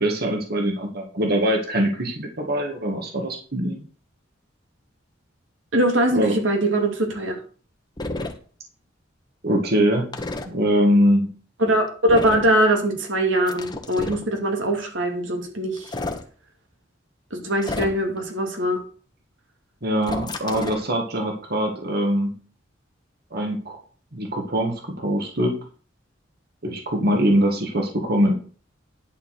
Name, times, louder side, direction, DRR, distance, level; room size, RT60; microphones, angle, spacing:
voice 1, 0.0-3.8 6.1-6.4 9.4-10.1 10.5-11.3 19.8-22.3 23.3-23.8 24.1-25.6 26.6-28.3, equal, 55° right, 1 dB, 2.0 m, -22 dB
voice 2, 5.7-7.3 11.6-15.9 17.3-18.8, right 1 dB, 85° right, 2 dB, 2.6 m, -22 dB
sound 1, 8.0-8.3 10.1-10.5 12.1-12.5 13.5-14.2 15.8-16.2 17.6-18.2 20.0-20.9, left 2 dB, 25° left, 1.3 m, -30 dB
11.0 x 4.8 x 6.4 m, 0.40 s
head